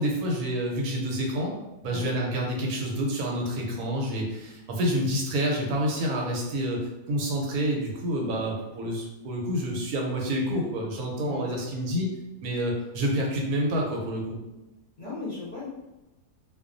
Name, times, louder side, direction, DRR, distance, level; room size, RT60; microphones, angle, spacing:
voice 1, 0.0-1.5 1.8-6.8 7.1-12.1 12.4-14.4, equal, 80° right, -1 dB, 1.1 m, -28 dB
voice 2, 15.0-15.7, left 3 dB, 50° left, -9 dB, 0.6 m, -37 dB
2.3 x 2.2 x 2.5 m, 1.0 s
omnidirectional pair, 1.6 m